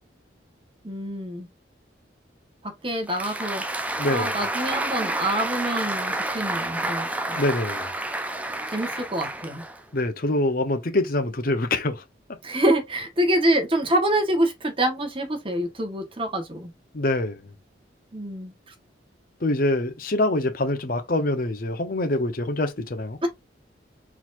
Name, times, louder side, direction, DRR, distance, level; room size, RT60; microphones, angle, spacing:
voice 1, 0.8-1.5 2.6-3.8 4.1-7.4 8.7-9.6 12.4-16.7 18.1-18.5 23.2-23.3, right 1 dB, 30° right, 1.3 m, -26 dB
Applause, 2.9-10.0, right 1 dB, 10° right, 0.5 m, -29 dB
voice 2, 4.0-4.4 7.4-7.9 9.9-12.0 16.9-17.4 19.4-23.2, left 1 dB, 50° left, 0.8 m, -25 dB
4.5 x 4.0 x 2.5 m
head